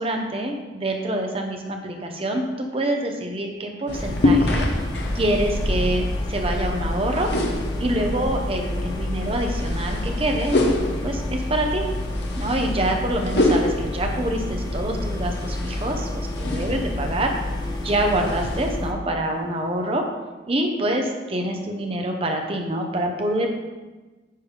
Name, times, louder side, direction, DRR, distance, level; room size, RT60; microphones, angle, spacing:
voice 1, 0.0-4.7 5.1-7.3 7.8-10.6 11.0-11.8 12.3-17.3 17.8-20.0 20.5-23.5, right 1 dB, 30° right, 3 dB, 0.9 m, -26 dB
sound 1, 3.9-18.8, left 1 dB, 60° left, 0.9 m, -27 dB
sound 2, 3.9-18.9, left 1 dB, 20° left, 0.6 m, -29 dB
10.0 x 3.5 x 4.9 m, 1.2 s
head